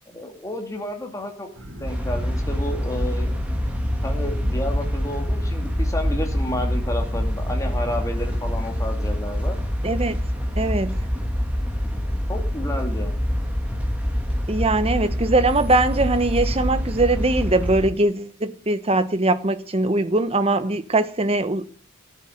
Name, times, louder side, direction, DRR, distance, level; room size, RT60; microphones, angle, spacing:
voice 1, 0.1-1.5 1.8-3.3 4.0-9.6 12.3-13.1, left 1 dB, 15° left, 2.4 m, -31 dB
sound 1, 1.6-10.6, equal, 65° right, 4.2 m, -38 dB
sound 2, 1.9-17.9, equal, 5° right, 2.4 m, -25 dB
voice 2, 9.8-10.3 10.6-11.0 14.5-21.7, right 2 dB, 25° right, 0.9 m, -21 dB
13.5 x 7.6 x 7.9 m
head